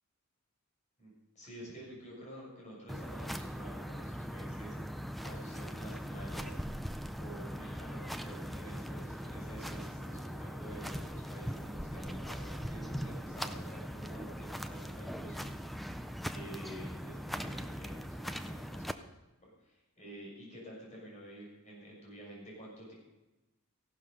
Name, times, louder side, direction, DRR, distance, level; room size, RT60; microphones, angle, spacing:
voice 1, 1.0-6.6 7.2-15.9 16.3-19.1 19.4-22.9, right 1 dB, 35° left, -3 dB, 6.7 m, -50 dB
sound 1, 2.9-18.9, equal, ahead, 0.5 m, -40 dB
16.0 x 11.5 x 5.4 m, 1.0 s
head